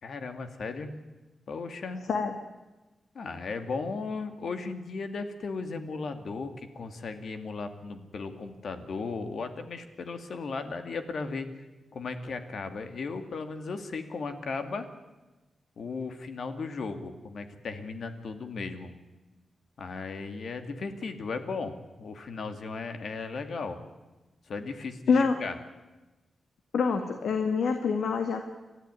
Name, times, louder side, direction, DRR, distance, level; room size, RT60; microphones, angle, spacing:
voice 1, 0.0-0.9 1.5-2.0 3.1-11.5 11.9-14.9 15.8-18.9 19.8-23.8 24.5-25.6, left 4 dB, 65° left, 8 dB, 2.3 m, -36 dB
voice 2, 26.7-28.4, left 5 dB, 85° left, 6 dB, 1.9 m, -25 dB
30.0 x 13.5 x 9.7 m, 1.2 s
wide cardioid pair, 125°, 0 cm